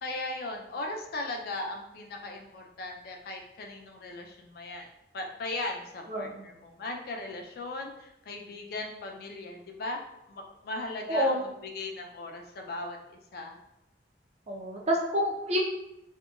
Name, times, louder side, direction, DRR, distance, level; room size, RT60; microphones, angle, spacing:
voice 1, 0.0-4.9 5.1-13.6, left 2 dB, 60° left, 2 dB, 0.4 m, -38 dB
voice 2, 6.1-6.5 11.1-11.4 14.5-15.6, equal, 40° right, -1 dB, 0.5 m, -28 dB
2.8 x 2.2 x 2.3 m, 0.85 s
head